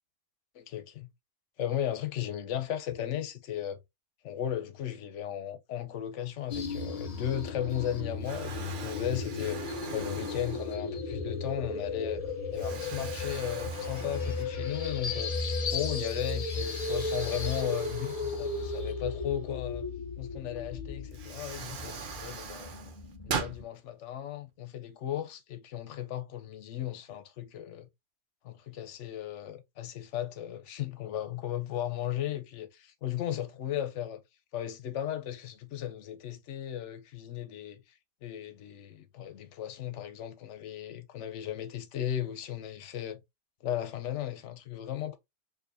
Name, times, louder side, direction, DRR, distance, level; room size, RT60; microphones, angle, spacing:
voice 1, 0.5-1.1 1.6-3.8 4.2-12.2 12.5-15.3 15.7-19.9 20.2-22.7 23.2-27.9 28.4-34.2 34.5-37.8 38.2-43.2 43.6-45.2, left 11 dB, 85° left, 0.9 m, -36 dB
sound 1, 6.5-23.6, left 3 dB, 40° left, 0.6 m, -35 dB
Explosion, 7.5-7.9 8.2-11.1 11.7-11.8 12.5-14.8 15.2-15.3 16.5-19.1 20.6-20.7 21.1-23.6, right 6 dB, 50° right, 0.8 m, -41 dB
4.8 x 2.6 x 2.5 m
omnidirectional pair, 1.2 m